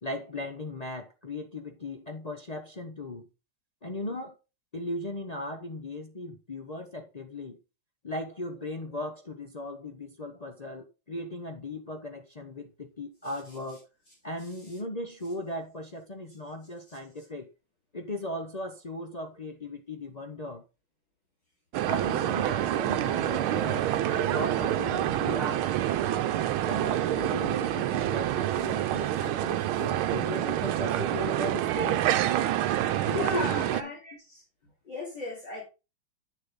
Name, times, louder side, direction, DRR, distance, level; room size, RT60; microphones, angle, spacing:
voice 1, 0.0-3.3 3.8-4.4 4.7-7.6 8.0-13.9 14.2-17.5 17.9-20.7 21.9-25.7 26.7-32.0 33.0-33.9, left 1 dB, 75° left, 0.3 m, -37 dB
sound 1, 21.7-33.8, right 12 dB, 80° right, 1.5 m, -27 dB
voice 2, 27.3-27.6 28.5-28.6 29.1-29.3 29.8-29.9 32.7-32.8 33.1-34.4 34.8-35.6, left 1 dB, 55° left, 3.5 m, -37 dB
8.9 x 6.7 x 3.7 m
omnidirectional pair, 2.3 m